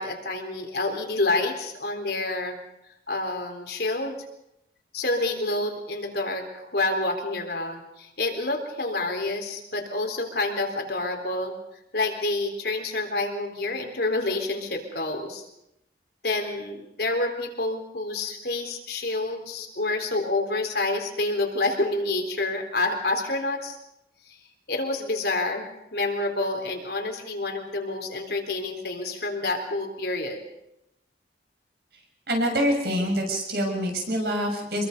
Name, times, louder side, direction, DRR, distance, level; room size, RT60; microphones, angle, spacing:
voice 1, 0.0-2.6 3.1-4.2 4.9-11.5 11.9-15.5 16.2-23.8 24.3-24.4 24.7-30.4, left 2 dB, 60° left, 3 dB, 3.9 m, -28 dB
voice 2, 32.3-34.8, equal, 55° right, 2 dB, 6.6 m, -25 dB
27.0 x 22.5 x 5.4 m, 0.85 s
head